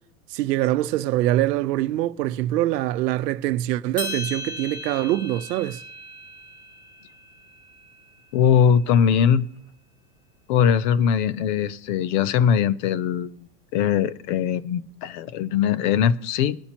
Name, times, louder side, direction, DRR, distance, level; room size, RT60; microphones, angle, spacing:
voice 1, 0.3-5.8, right 15 dB, 85° right, 0.8 m, -24 dB
sound 1, 4.0-8.4, left 1 dB, 15° left, 2.1 m, -37 dB
voice 2, 8.3-9.5 10.5-13.4 13.7-16.6, left 8 dB, 35° left, 0.4 m, -21 dB
21.5 x 9.9 x 3.0 m
supercardioid pair, 155°, 48 cm